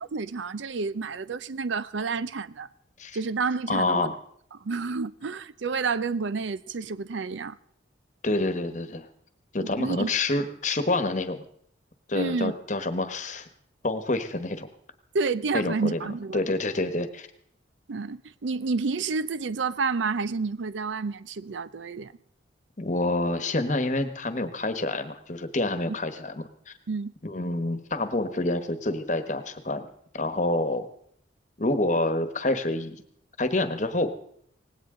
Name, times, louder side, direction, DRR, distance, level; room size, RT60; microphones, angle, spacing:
voice 1, 0.0-2.7 3.1-4.1 4.5-7.6 9.6-10.1 12.1-12.5 15.1-16.5 17.9-22.1 25.9-26.0 26.9-27.1, right 4 dB, 75° right, 0.5 m, -30 dB
voice 2, 3.7-4.2 8.2-9.1 9.5-11.4 12.1-13.5 13.8-14.7 15.5-16.0 16.3-17.3 22.8-26.7 27.2-29.9 30.1-30.9 31.6-33.0 33.4-34.1, left 2 dB, 40° left, 1.2 m, -27 dB
18.5 x 16.5 x 3.8 m
head